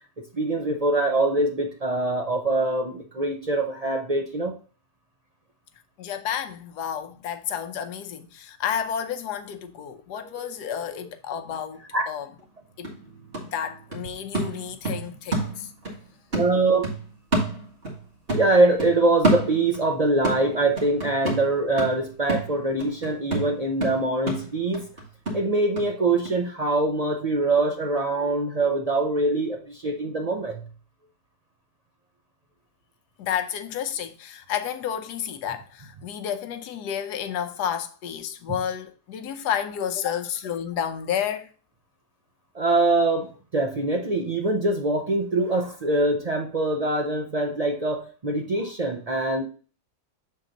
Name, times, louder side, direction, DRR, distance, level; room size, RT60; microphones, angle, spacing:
voice 1, 0.3-4.5 10.1-10.7 11.9-12.0 16.3-16.9 18.3-24.9 25.3-30.6 38.5-38.6 42.5-49.4, right 2 dB, 60° right, 0.4 m, -24 dB
voice 2, 6.0-11.8 12.1-12.3 12.8-12.9 13.5-15.7 33.2-41.5, left 8 dB, 80° left, 1.2 m, -31 dB
sound 1, 12.4-12.5 12.8-16.0 16.3-18.0 18.3-19.9 20.2-25.9 26.2-26.3, right 1 dB, 35° right, 1.8 m, -29 dB
7.3 x 3.8 x 3.9 m
omnidirectional pair, 1.8 m